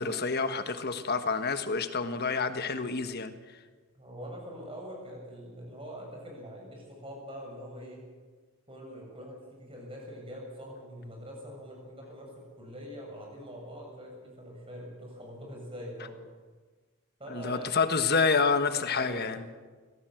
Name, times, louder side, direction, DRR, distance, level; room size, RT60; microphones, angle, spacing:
voice 1, 0.0-3.3 17.3-19.4, left 4 dB, 45° left, 9 dB, 1.4 m, -28 dB
voice 2, 3.9-8.0 8.7-16.2 17.2-17.8 18.7-19.3, equal, 25° right, 0 dB, 7.2 m, -44 dB
24.0 x 17.5 x 7.8 m, 1.4 s
head